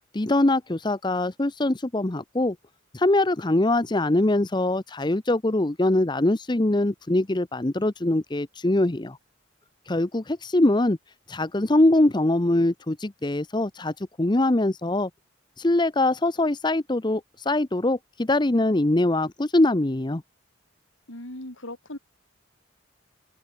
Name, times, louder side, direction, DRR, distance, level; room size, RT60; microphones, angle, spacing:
voice 1, 0.1-2.6 2.9-9.2 9.9-11.0 11.3-15.1 15.6-20.2, left 1 dB, 25° left, 0.8 m, -23 dB
voice 2, 21.1-22.0, left 1 dB, 85° left, 6.7 m, -38 dB
head